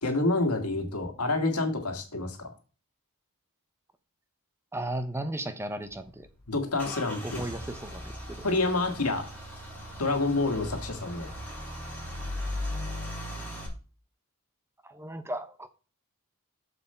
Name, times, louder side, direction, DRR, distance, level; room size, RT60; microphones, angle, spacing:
voice 1, 0.0-2.5 6.5-7.4 8.4-9.3 10.0-11.3, left 2 dB, 90° left, 1.8 m, -28 dB
voice 2, 4.7-6.3 7.2-8.4 14.9-15.7, right 1 dB, 10° right, 0.7 m, -35 dB
Car / Engine starting / Idling, 5.8-13.7, left 1 dB, 10° left, 3.6 m, -38 dB
7.2 x 6.8 x 4.3 m
head